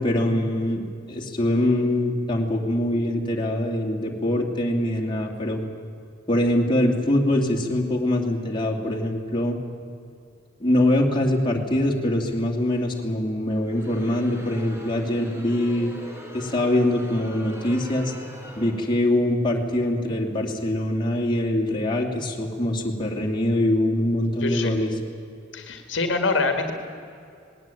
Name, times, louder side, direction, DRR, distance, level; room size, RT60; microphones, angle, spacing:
voice 1, 0.0-5.6 6.3-9.6 10.6-15.9 16.3-18.1 18.6-24.9, left 1 dB, 25° left, 0 dB, 2.7 m, -23 dB
Crowd, 13.5-19.3, equal, 15° right, 3.1 m, -41 dB
voice 2, 24.4-24.8 25.5-26.7, left 3 dB, 65° left, 6 dB, 2.0 m, -25 dB
19.5 x 18.0 x 9.1 m, 2.5 s
head